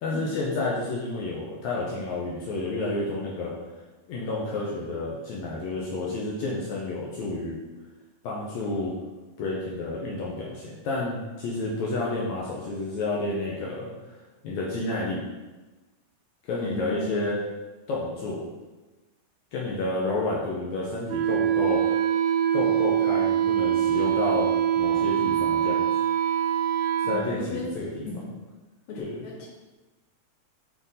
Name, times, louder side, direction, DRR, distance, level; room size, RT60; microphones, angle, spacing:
voice 1, 0.0-3.5 4.1-7.6 8.2-8.9 9.4-14.2 14.4-15.2 16.4-17.4 17.9-18.4 19.5-21.8 22.5-25.9 27.1-28.3 29.0-29.2, left 2 dB, 80° left, -4 dB, 1.7 m, -30 dB
voice 2, 16.6-17.3 19.7-19.9 27.0-27.7 28.0-28.3 28.9-29.5, left 2 dB, 65° left, -3 dB, 1.4 m, -36 dB
Wind instrument woodwind instrument, 21.1-27.3, right 10 dB, 85° right, 2.4 m, -24 dB
6.3 x 3.8 x 4.1 m, 1.2 s
omnidirectional pair, 4.2 m